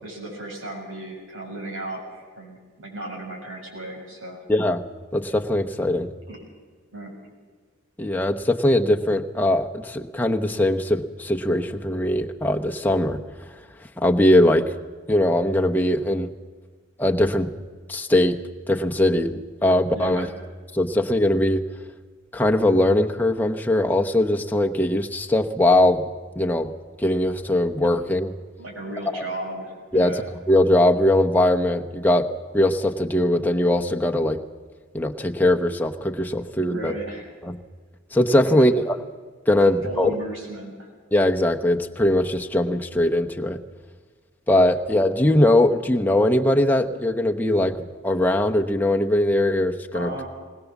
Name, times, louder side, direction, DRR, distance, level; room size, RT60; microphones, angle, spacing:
voice 1, 0.0-4.4 6.3-6.4 6.9-7.1 19.9-20.3 28.6-30.2 36.7-37.3 38.4-38.7 39.6-40.9 49.9-50.3, right 1 dB, 85° right, -1 dB, 6.9 m, -35 dB
voice 2, 4.5-4.8 5.1-6.1 8.0-13.2 14.0-14.7 15.1-16.3 17.0-17.5 17.9-18.4 18.7-20.3 20.7-21.6 22.3-26.0 26.4-26.7 27.0-28.3 29.1-29.2 29.9-30.2 30.5-32.3 32.5-34.4 34.9-36.9 37.4-37.6 38.1-39.0 39.5-40.1 41.1-43.6 44.5-47.8 48.0-50.1, left 1 dB, 10° left, 3 dB, 0.9 m, -20 dB
21.0 x 19.5 x 7.2 m, 1.5 s
head